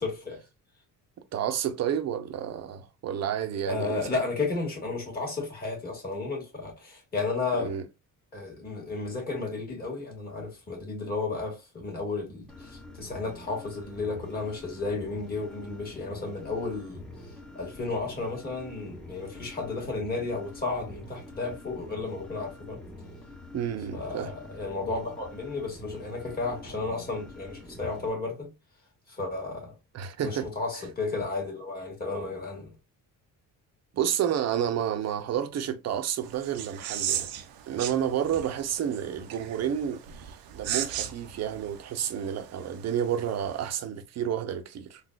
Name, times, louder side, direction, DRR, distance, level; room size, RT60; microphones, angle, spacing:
voice 1, 0.0-0.4 3.6-7.8 8.3-17.1 17.5-22.8 23.9-28.5 29.1-29.7 30.2-32.7, left 3 dB, 25° left, 1.7 m, -33 dB
voice 2, 1.3-4.0 7.6-7.8 23.5-24.3 29.9-30.5 33.9-37.3 37.7-45.0, right 9 dB, 45° right, 0.6 m, -30 dB
sound 1, 12.5-28.1, left 2 dB, ahead, 0.7 m, -46 dB
sound 2, 36.2-43.7, right 10 dB, 90° right, 0.6 m, -37 dB
3.9 x 2.4 x 2.3 m
cardioid pair, 140°, 35 cm